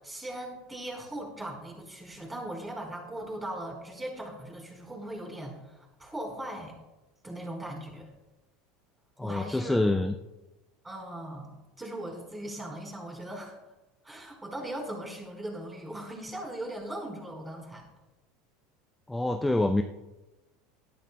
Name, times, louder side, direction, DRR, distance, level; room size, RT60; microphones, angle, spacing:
voice 1, 0.0-6.8 7.2-8.1 9.2-9.8 10.8-13.5 14.0-17.9, right 1 dB, 15° right, 0 dB, 4.6 m, -39 dB
voice 2, 9.2-10.1 19.1-19.8, left 2 dB, 10° left, 7 dB, 0.6 m, -26 dB
17.5 x 12.0 x 2.3 m, 1.0 s
hypercardioid pair, 80°, 0 cm